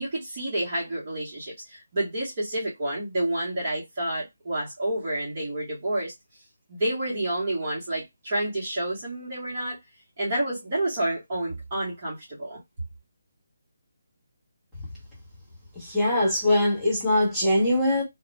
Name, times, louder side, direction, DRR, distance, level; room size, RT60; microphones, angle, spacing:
voice 1, 0.0-6.1 6.7-9.8 10.2-12.6, right 1 dB, 25° right, 0.9 m, -29 dB
voice 2, 15.8-18.0, left 1 dB, ahead, 1.2 m, -22 dB
2.5 x 2.1 x 3.0 m
hypercardioid pair, 175°, 0 cm